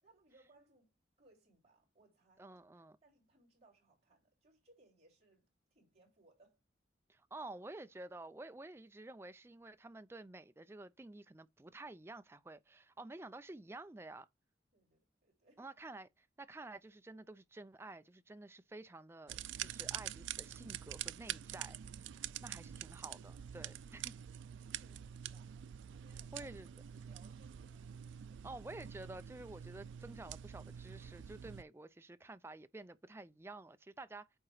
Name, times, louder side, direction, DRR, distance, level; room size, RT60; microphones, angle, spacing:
voice 1, 0.0-6.6 14.7-15.7 24.8-26.6 26.9-27.9 28.2-28.5, right 2 dB, 35° right, 3.3 m, -69 dB
voice 2, 2.4-3.0 7.1-14.3 15.6-24.2 26.3-26.7 28.4-34.3, right 2 dB, 15° right, 0.4 m, -51 dB
sound 1, 19.3-31.6, right 10 dB, 85° right, 0.4 m, -46 dB
8.7 x 2.9 x 4.9 m
head